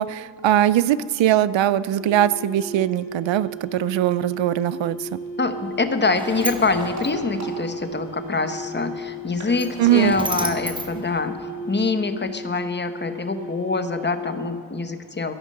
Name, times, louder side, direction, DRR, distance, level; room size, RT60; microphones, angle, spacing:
voice 1, 0.0-5.2 9.8-10.1, right 12 dB, 90° right, 17 dB, 0.6 m, -21 dB
sound 1, 2.0-14.7, equal, 45° left, 1.6 m, -35 dB
sound 2, 3.6-4.1 5.8-8.4 8.7-8.8 9.0-9.1 9.3-10.3, right 2 dB, 35° right, 2.9 m, -39 dB
voice 2, 5.4-11.4 11.7-15.3, left 3 dB, 25° left, 9 dB, 0.9 m, -25 dB
Sliding door, 5.5-11.9, right 2 dB, 10° right, 0.9 m, -35 dB
13.0 x 11.0 x 6.5 m, 2.2 s
wide cardioid pair, 130°, 43 cm